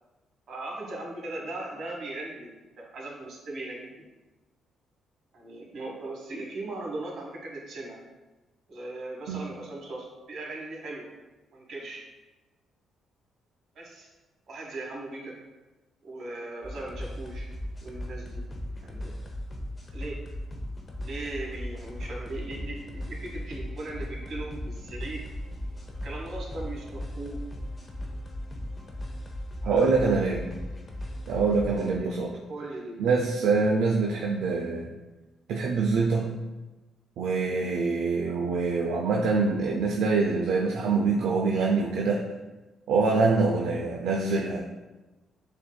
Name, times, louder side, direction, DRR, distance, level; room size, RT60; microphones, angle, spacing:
voice 1, 0.5-4.0 5.3-8.0 8.7-11.1 11.5-12.0 13.7-14.1 14.5-15.4 16.0-17.5 17.8-18.5 18.8-19.2 19.9-20.3 21.0-25.2 26.0-27.5 29.6-29.9 31.7-32.2 32.5-33.1 37.5-37.7, right 2 dB, 65° right, -2 dB, 1.2 m, -38 dB
sound 1, 16.6-32.0, left 1 dB, 30° left, 0.7 m, -37 dB
voice 2, 29.7-30.5 31.3-32.4 33.0-34.9 35.5-36.3 37.2-42.2 42.9-44.7, right 4 dB, 80° right, 0 dB, 0.4 m, -25 dB
6.9 x 2.6 x 2.2 m, 1.1 s
cardioid pair, 90°, 0 cm